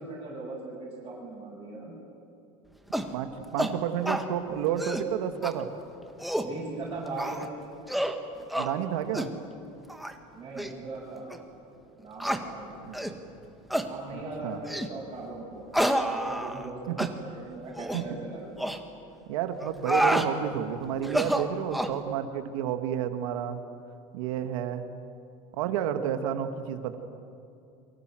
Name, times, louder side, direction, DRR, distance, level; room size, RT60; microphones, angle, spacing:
voice 1, 0.0-2.0 6.3-7.4 10.3-11.3 12.0-12.8 13.8-15.6 16.1-18.6, right 3 dB, 25° right, -7 dB, 7.2 m, -39 dB
sound 1, 2.9-3.1 3.6-3.7 4.1-4.3 4.7-5.1 5.4-5.5 6.0-6.5 7.2-7.5 7.9-8.2 8.5-8.7 9.1-9.3 9.9-10.1 10.6-10.7 11.3-11.4 12.2-12.4 12.9-13.2 13.7-13.9 14.7-14.9 15.7-16.7 17.0-17.1 17.8-18.0 18.6-18.8 19.6-20.3 21.0-22.0, right 1 dB, ahead, 1.5 m, -28 dB
voice 2, 3.1-5.7 8.5-9.3 12.8-13.2 14.1-14.6 16.9-17.0 17.9-18.0 19.3-23.6 24.1-24.8 25.5-27.0, right 9 dB, 85° right, 7 dB, 1.9 m, -31 dB
29.5 x 24.0 x 7.7 m, 2.6 s
supercardioid pair, 145°, 17 cm